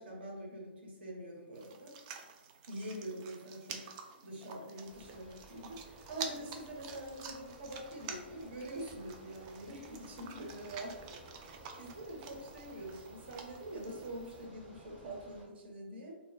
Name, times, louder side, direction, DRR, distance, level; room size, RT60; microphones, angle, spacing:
voice 1, 0.0-1.9 2.7-3.9 4.2-11.1 11.4-16.1, right 1 dB, 65° right, -1 dB, 0.9 m, -45 dB
sound 1, 1.5-14.5, right 6 dB, 35° right, 0.3 m, -49 dB
Bicycle, 4.9-15.5, right 1 dB, 20° right, 0.7 m, -56 dB
2.1 x 2.0 x 3.7 m, 1.1 s
hypercardioid pair, 130°, 6 cm